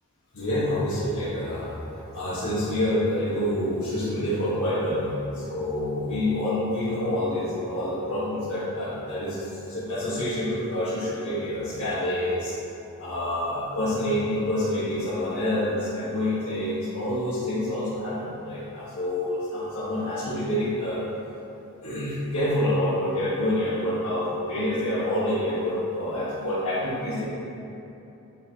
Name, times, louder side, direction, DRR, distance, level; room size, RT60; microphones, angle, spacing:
voice 1, 0.3-12.5 13.0-21.0 21.8-27.2, left 1 dB, 80° left, -12 dB, 1.3 m, -27 dB
8.6 x 4.3 x 2.8 m, 3.0 s
head